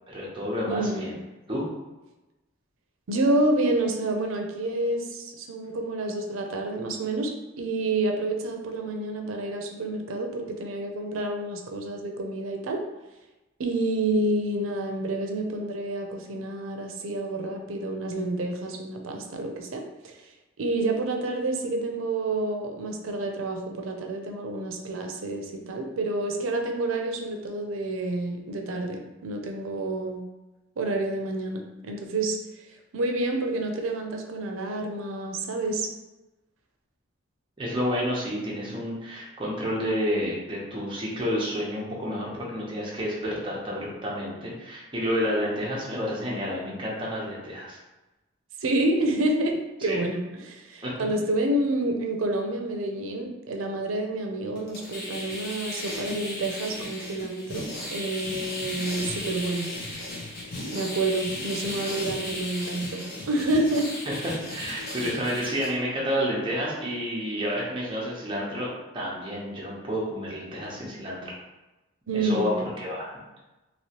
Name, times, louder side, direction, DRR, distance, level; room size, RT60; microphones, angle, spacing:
voice 1, 0.1-1.1 1.5-1.7 37.6-47.8 49.8-50.0 50.8-50.9 64.1-64.2 64.5-71.2 72.1-73.1, equal, 25° right, -5 dB, 0.8 m, -30 dB
voice 2, 0.7-1.1 3.1-7.3 7.6-12.8 13.6-20.1 20.6-30.2 30.8-32.4 32.9-35.9 48.6-57.7 57.9-59.7 60.7-63.9 64.5-64.6 72.1-72.6, right 2 dB, 85° right, 3 dB, 0.5 m, -28 dB
sound 1, 54.6-65.7, left 1 dB, 50° left, 1.0 m, -35 dB
3.0 x 3.0 x 2.9 m, 1.1 s
head